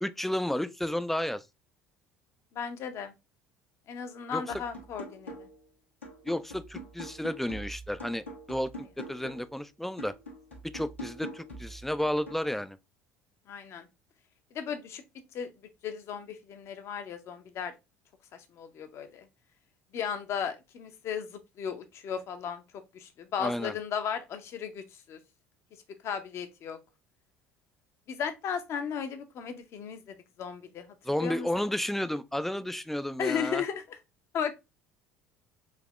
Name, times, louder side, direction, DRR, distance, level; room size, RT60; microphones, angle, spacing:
voice 1, 0.0-1.4 4.3-4.4 6.3-10.1 10.7-12.8 23.4-23.7 31.1-33.6, left 1 dB, 5° left, 0.3 m, -32 dB
voice 2, 2.5-3.1 3.9-5.5 13.5-13.9 14.5-15.0 15.3-15.5 15.8-17.7 18.3-19.3 19.9-22.6 22.9-25.2 26.0-26.8 28.1-30.9 31.2-31.5 33.2-34.0 34.3-34.5, left 7 dB, 45° left, 0.7 m, -35 dB
sound 1, 4.5-5.7 6.0-9.5 10.0-12.5, equal, 85° left, 1.2 m, -44 dB
4.1 x 2.8 x 3.1 m
figure-of-eight pair, 60°, 6 cm